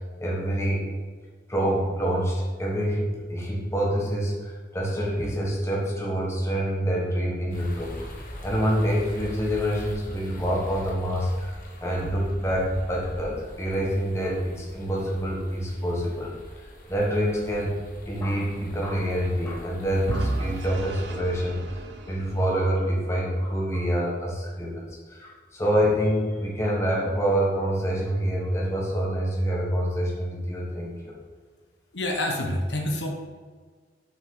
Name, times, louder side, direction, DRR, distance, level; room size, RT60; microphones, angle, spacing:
voice 1, 0.2-0.9 1.5-8.1 8.4-16.3 16.9-17.8 18.1-31.1, equal, 15° left, -3 dB, 1.3 m, -26 dB
sound 1, 7.5-20.7, equal, 50° left, 1.3 m, -42 dB
Vehicle / Engine, 20.1-23.1, right 2 dB, 80° right, 0.7 m, -33 dB
voice 2, 31.9-33.1, left 1 dB, 80° left, 1 dB, 1.1 m, -27 dB
6.4 x 5.5 x 3.8 m, 1.5 s
head